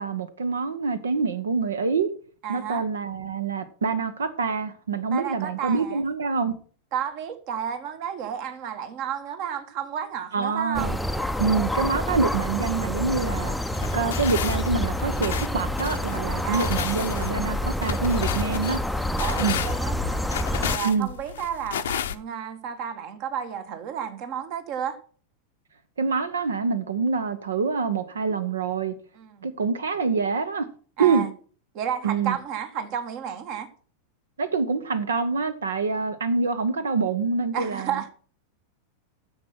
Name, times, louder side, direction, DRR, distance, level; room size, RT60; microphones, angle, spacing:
voice 1, 0.0-2.1 2.5-6.6 10.3-11.0 11.4-13.6 13.9-18.8 19.4-19.6 20.8-21.1 26.0-28.9 29.4-30.7 31.0-31.3 32.0-32.4 34.4-38.0, right 5 dB, 70° right, 0.9 m, -26 dB
voice 2, 2.4-2.8 5.1-6.0 6.9-10.9 16.4-16.8 19.2-20.2 20.6-25.0 29.2-29.5 31.0-31.3 31.7-33.7 37.5-38.1, right 8 dB, 45° right, 1.5 m, -32 dB
sound 1, 10.7-20.8, left 1 dB, ahead, 0.6 m, -28 dB
sound 2, 13.7-22.1, left 10 dB, 60° left, 0.6 m, -33 dB
9.8 x 7.3 x 5.8 m
figure-of-eight pair, 90°, 0 cm